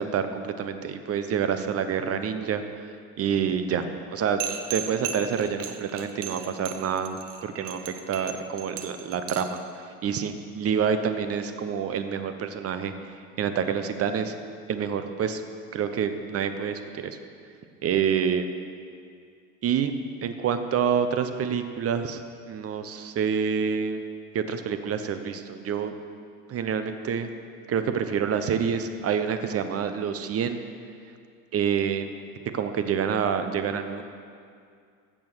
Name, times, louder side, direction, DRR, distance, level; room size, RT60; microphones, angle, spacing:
voice 1, 0.0-2.9 3.2-3.8 4.1-4.4 4.7-7.8 8.1-9.6 10.0-12.9 13.4-14.4 14.7-15.4 15.7-17.2 17.8-18.5 19.6-22.2 22.5-24.0 24.3-26.0 26.5-27.3 27.7-30.6 31.5-32.1 32.5-34.0, right 7 dB, 30° right, 9 dB, 1.0 m, -27 dB
sound 1, 4.4-9.6, right 10 dB, 55° right, 1.2 m, -35 dB
15.0 x 6.3 x 6.2 m, 2.3 s
hypercardioid pair, 75°, 45 cm